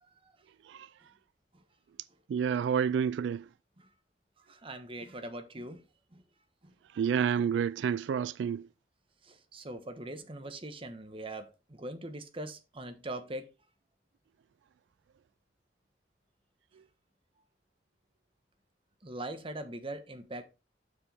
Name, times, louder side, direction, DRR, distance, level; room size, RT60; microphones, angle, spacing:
voice 1, 2.3-3.4 7.0-8.6, right 7 dB, 85° right, 0.3 m, -29 dB
voice 2, 4.5-5.8 6.1-6.2 6.6-6.7 9.2-13.5 19.0-20.4, right 1 dB, 30° right, 1.1 m, -41 dB
7.3 x 6.6 x 3.4 m
head